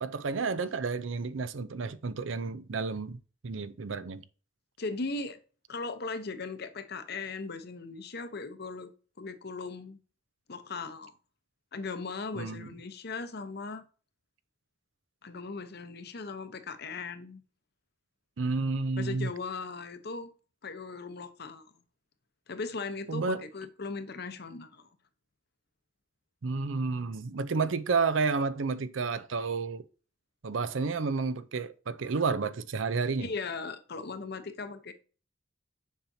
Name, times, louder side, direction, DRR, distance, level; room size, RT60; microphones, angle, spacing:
voice 1, 0.0-3.2 3.4-4.2 12.3-12.7 18.4-19.3 23.1-23.4 26.4-29.8 30.4-33.3, right 4 dB, 90° right, 0.6 m, -31 dB
voice 2, 4.8-5.4 5.7-8.9 9.2-10.0 10.5-11.1 11.7-13.8 15.2-17.4 19.0-20.3 20.6-21.7 22.5-24.9 33.2-34.9, left 4 dB, 55° left, 0.9 m, -38 dB
7.3 x 5.7 x 2.7 m
head